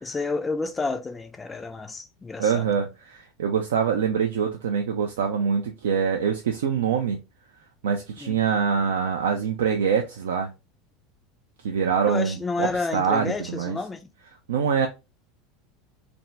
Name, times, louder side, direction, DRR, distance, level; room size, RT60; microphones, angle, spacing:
voice 1, 0.0-2.7 8.2-8.4 12.1-14.1, left 3 dB, 15° left, 0.4 m, -30 dB
voice 2, 2.4-7.2 7.8-10.5 11.6-13.8 14.5-14.9, right 7 dB, 65° right, 0.3 m, -24 dB
2.5 x 2.2 x 3.1 m
figure-of-eight pair, 75°, 0 cm